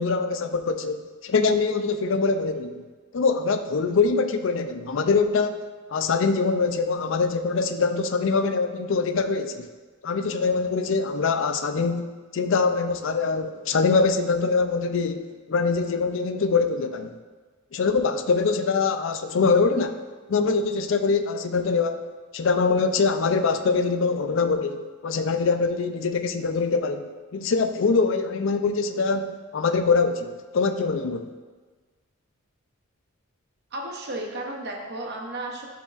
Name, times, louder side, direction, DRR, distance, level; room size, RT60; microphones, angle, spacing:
voice 1, 0.0-2.8 3.1-5.6 5.9-9.7 10.0-17.1 17.7-20.0 20.3-31.3, left 4 dB, 60° left, 8 dB, 0.4 m, -24 dB
voice 2, 33.7-35.7, right 1 dB, 45° right, 1 dB, 0.7 m, -33 dB
9.7 x 4.7 x 2.4 m, 1.4 s
head